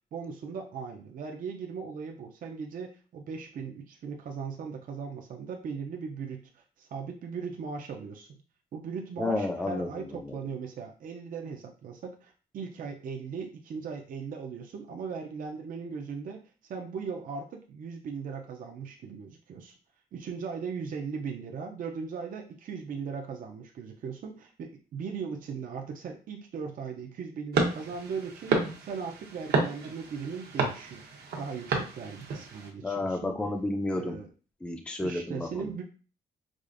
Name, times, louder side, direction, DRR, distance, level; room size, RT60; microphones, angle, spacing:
voice 1, 0.1-8.4 8.7-16.4 16.7-19.8 20.1-31.1 31.4-33.3 33.9-34.3 35.0-35.8, right 5 dB, 55° right, 2 dB, 0.5 m, -38 dB
voice 2, 9.2-10.4 32.8-34.2 34.6-35.7, left 2 dB, 5° left, 4 dB, 0.4 m, -31 dB
sound 1, 27.5-32.7, right 4 dB, 75° right, 0.9 m, -31 dB
4.8 x 2.4 x 2.5 m, 0.37 s
cardioid pair, 140°, 17 cm